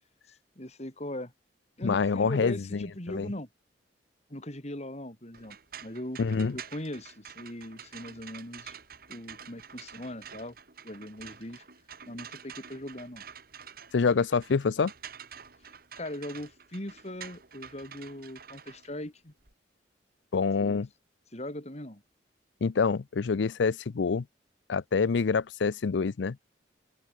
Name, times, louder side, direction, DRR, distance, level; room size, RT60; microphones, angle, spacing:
voice 1, 0.6-1.3 1.8-3.5 4.3-6.2 6.5-8.8 9.1-10.6 10.8-11.6 12.1-13.2 16.0-19.3 20.6-20.8 21.3-22.0, left 1 dB, 35° left, 3.7 m, -40 dB
voice 2, 1.8-3.3 6.2-6.6 13.9-14.9 20.3-20.9 22.6-24.2 24.7-26.4, left 5 dB, 80° left, 0.5 m, -26 dB
sound 1, 5.3-19.5, right 7 dB, 55° right, 3.0 m, -48 dB
head